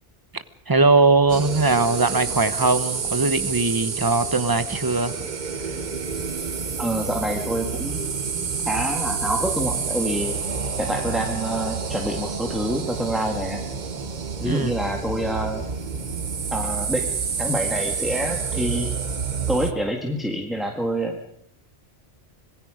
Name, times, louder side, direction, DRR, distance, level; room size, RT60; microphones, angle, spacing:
voice 1, 0.3-5.3 14.4-14.7, right 3 dB, 20° right, 12 dB, 1.0 m, -20 dB
sound 1, 1.1-18.1, equal, 80° right, 5.4 m, -41 dB
sound 2, 1.3-19.7, right 6 dB, 50° right, 1.0 m, -29 dB
voice 2, 6.8-8.1 8.7-10.4 10.8-13.6 14.4-15.7 16.5-17.1 17.4-18.9 19.5-21.2, right 1 dB, ahead, 2 dB, 1.8 m, -26 dB
26.0 x 19.5 x 5.1 m, 0.73 s
omnidirectional pair, 1.1 m